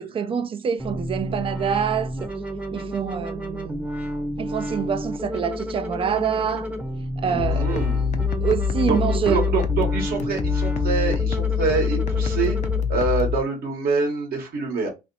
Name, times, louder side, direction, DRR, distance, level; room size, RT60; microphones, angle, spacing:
voice 1, 0.0-2.4 2.7-3.9 4.4-6.7 7.2-8.0 8.4-9.5, right 7 dB, 30° right, 0.4 m, -26 dB
sound 1, 0.8-12.8, equal, 5° right, 0.8 m, -31 dB
voice 2, 7.2-8.0 8.9-9.0 9.3-12.6 12.9-14.9, right 4 dB, 65° right, 1.3 m, -25 dB
sound 2, 7.4-13.4, left 6 dB, 45° left, 0.5 m, -24 dB
2.9 x 2.9 x 2.7 m
cardioid pair, 110°, 17 cm